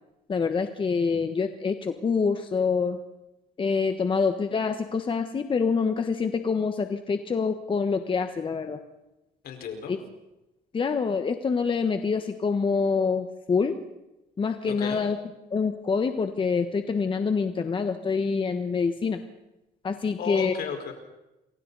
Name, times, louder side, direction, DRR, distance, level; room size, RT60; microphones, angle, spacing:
voice 1, 0.3-3.0 3.6-8.8 9.9-10.0 10.7-13.7 14.4-15.2 15.5-19.2 19.8-20.5, left 5 dB, 30° left, 7 dB, 1.3 m, -26 dB
voice 2, 9.4-10.0 14.7-15.0 20.2-20.9, left 7 dB, 65° left, 4 dB, 4.8 m, -34 dB
28.5 x 23.0 x 4.1 m, 0.98 s
cardioid pair, 110°, 17 cm